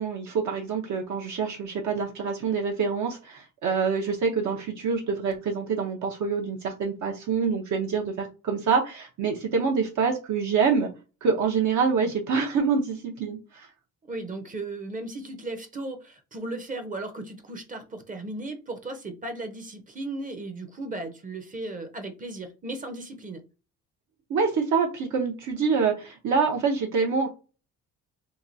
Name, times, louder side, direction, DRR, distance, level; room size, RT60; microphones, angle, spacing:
voice 1, 0.0-10.9 11.2-13.7 24.3-27.3, right 5 dB, 60° right, 0 dB, 0.8 m, -26 dB
voice 2, 14.1-23.4, right 2 dB, 25° right, 7 dB, 0.7 m, -36 dB
2.9 x 2.3 x 3.9 m, 0.32 s
cardioid pair, 145°, 33 cm